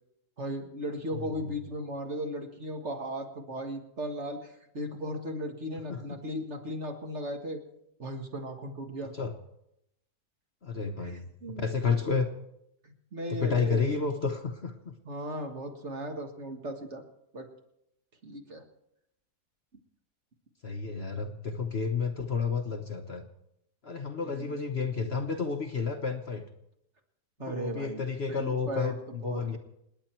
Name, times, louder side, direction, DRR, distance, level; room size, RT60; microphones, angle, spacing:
voice 1, 0.4-7.6 8.0-9.1 11.0-11.1 11.4-11.7 12.8-13.9 15.1-17.0 17.3-17.5 18.2-18.6 24.2-24.5 27.4-28.0 28.3-28.9 29.2-29.6, equal, 45° right, 3 dB, 1.9 m, -36 dB
voice 2, 1.1-1.6 5.9-6.0 9.1-9.3 10.6-12.3 13.3-14.9 20.6-23.2 23.8-26.4 27.4-29.6, left 5 dB, 45° left, 5 dB, 1.1 m, -31 dB
28.5 x 9.7 x 4.5 m, 0.81 s
omnidirectional pair, 1.7 m